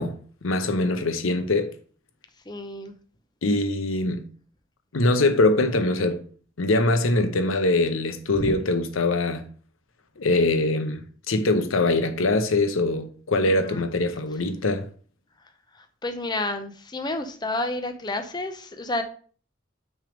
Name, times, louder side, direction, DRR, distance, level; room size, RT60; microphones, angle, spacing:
voice 1, 0.0-1.7 3.4-4.2 4.9-6.2 6.6-9.4 10.2-14.9, left 2 dB, 85° left, 0.8 m, -23 dB
voice 2, 2.5-2.9 8.4-8.5 13.4-13.9 15.8-19.0, left 2 dB, 20° left, 0.6 m, -30 dB
6.2 x 3.5 x 4.9 m
head